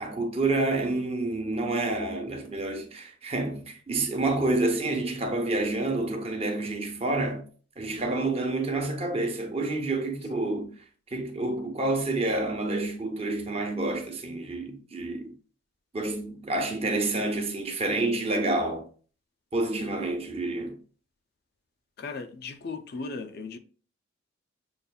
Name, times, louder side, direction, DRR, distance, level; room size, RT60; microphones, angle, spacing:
voice 1, 0.0-7.4 7.8-10.7 11.1-15.3 15.9-18.9 19.5-20.8, right 2 dB, 30° right, 0.7 m, -28 dB
voice 2, 22.0-23.6, left 4 dB, 50° left, 0.4 m, -37 dB
6.8 x 2.5 x 2.2 m
head